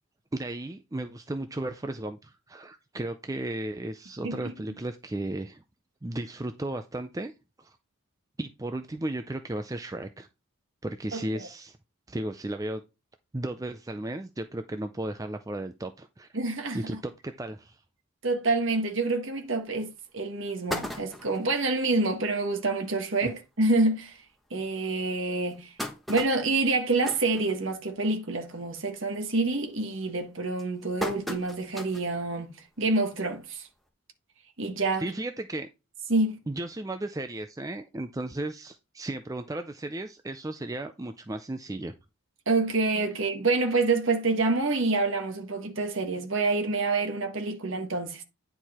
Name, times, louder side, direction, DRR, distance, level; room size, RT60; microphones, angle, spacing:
voice 1, 0.3-5.6 6.0-7.3 7.6-7.8 8.4-10.3 10.8-11.8 12.1-12.8 13.3-16.3 16.7-17.8 23.2-23.3 35.0-35.7 36.5-41.9, right 1 dB, 15° right, 0.4 m, -35 dB
voice 2, 11.1-11.5 16.3-17.0 18.2-24.2 24.5-25.7 26.1-32.5 32.8-33.7 34.6-35.1 36.1-36.3 42.5-48.2, right 3 dB, 60° right, 1.5 m, -27 dB
sound 1, 19.6-19.7 20.1-20.2 20.5-21.5 22.1-22.2 22.5-22.6 22.9-23.1 23.8-23.9 24.4-24.5 25.2-28.1 28.4-28.8 29.1-29.5 30.1-32.2 32.6-32.7 33.9-34.0, left 1 dB, ahead, 1.2 m, -37 dB
9.8 x 4.6 x 4.2 m
head